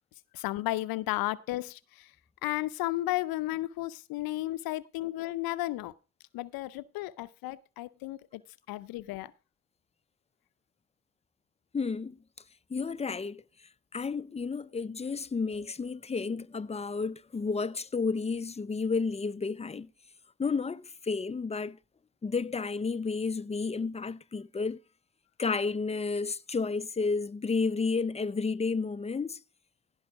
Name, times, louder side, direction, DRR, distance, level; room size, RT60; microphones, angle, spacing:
voice 1, 0.3-2.1 2.4-5.9 6.3-8.4 8.7-9.3, left 17 dB, 75° left, 0.7 m, -33 dB
voice 2, 11.7-12.2 12.7-13.4 13.9-19.9 20.4-21.8 22.2-24.8 25.4-29.4, left 4 dB, 20° left, 0.6 m, -31 dB
16.5 x 5.5 x 4.7 m
hypercardioid pair, 50°, 36 cm